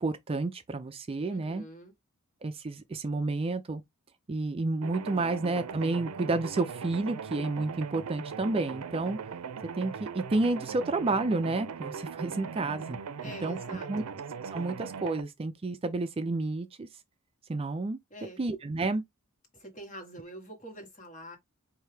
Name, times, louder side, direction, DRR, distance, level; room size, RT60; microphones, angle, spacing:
voice 1, 0.0-1.6 2.4-3.8 4.3-9.2 9.7-13.0 13.4-13.6 13.9-14.0 14.5-16.9 17.5-18.0 18.4-19.0, right 3 dB, 25° right, 0.4 m, -30 dB
voice 2, 1.3-1.9 13.2-14.1 18.1-18.4 19.5-21.4, equal, 35° left, 1.5 m, -45 dB
sound 1, 4.8-15.2, right 6 dB, 80° right, 0.5 m, -39 dB
4.6 x 2.7 x 3.3 m
head